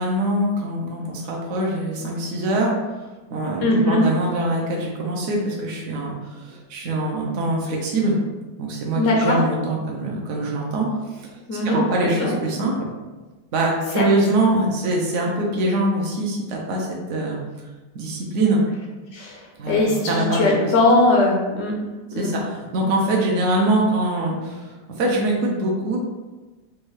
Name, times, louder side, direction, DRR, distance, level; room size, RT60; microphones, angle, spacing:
voice 1, 0.0-2.7 3.3-8.2 8.6-11.3 11.6-12.9 13.5-17.4 17.9-18.6 19.6-20.7 22.2-26.0, right 1 dB, 70° right, -2 dB, 0.7 m, -23 dB
voice 2, 3.6-4.0 8.9-9.4 11.5-12.3 14.0-14.1 19.1-21.8 22.1-22.3, left 2 dB, 80° left, -1 dB, 0.7 m, -20 dB
4.1 x 2.3 x 3.1 m, 1.2 s
omnidirectional pair, 1.9 m